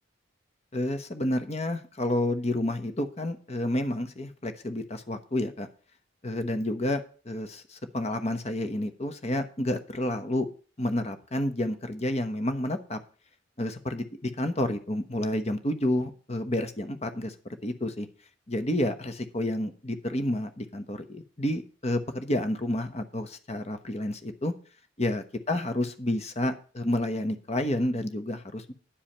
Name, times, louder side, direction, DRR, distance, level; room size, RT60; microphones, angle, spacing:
voice 1, 0.7-5.7 6.2-10.5 10.8-13.0 13.6-17.3 17.6-18.1 18.5-24.5 25.0-28.7, left 1 dB, 35° left, 9 dB, 1.1 m, -30 dB
10.0 x 4.9 x 7.2 m, 0.39 s
head